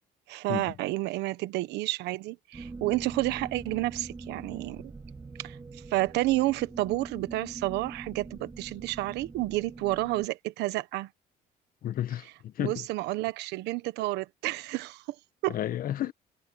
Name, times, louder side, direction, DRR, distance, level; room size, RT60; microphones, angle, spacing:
voice 1, 0.3-4.8 5.4-5.6 5.9-11.1 12.6-15.0 15.4-15.6, right 18 dB, 90° right, 1.2 m, -30 dB
sound 1, 2.5-10.3, right 3 dB, 20° right, 2.5 m, -43 dB
voice 2, 11.8-12.8 15.5-16.1, left 11 dB, 60° left, 1.3 m, -32 dB
cardioid pair, 110°, 17 cm